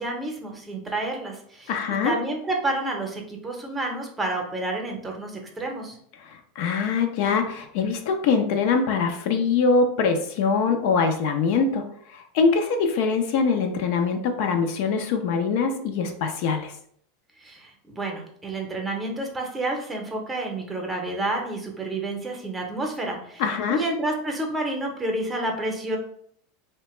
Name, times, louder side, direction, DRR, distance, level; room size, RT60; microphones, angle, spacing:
voice 1, 0.0-1.7 2.0-6.0 17.4-23.4 23.7-26.0, right 2 dB, 15° right, 1 dB, 0.7 m, -29 dB
voice 2, 1.7-2.2 6.2-16.7 23.4-23.8, left 5 dB, 65° left, 5 dB, 0.4 m, -23 dB
2.8 x 2.1 x 3.1 m, 0.64 s
hypercardioid pair, 110°, 0 cm